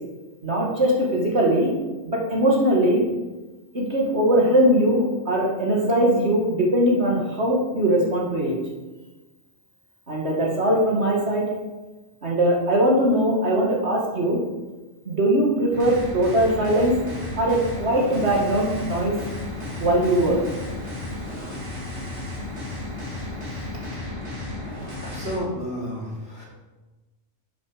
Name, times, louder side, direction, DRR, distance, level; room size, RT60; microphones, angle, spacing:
voice 1, 0.4-1.7 2.0-3.0 3.7-8.6 10.1-11.5 12.2-14.4 15.1-17.0 17.4-19.1 19.8-20.4, right 1 dB, 55° right, -2 dB, 2.4 m, -21 dB
sound 1, 15.7-25.4, left 2 dB, 80° right, 3.2 m, -33 dB
voice 2, 25.0-26.4, equal, 55° left, -4 dB, 3.4 m, -31 dB
11.5 x 7.2 x 5.1 m, 1.2 s
omnidirectional pair, 1.3 m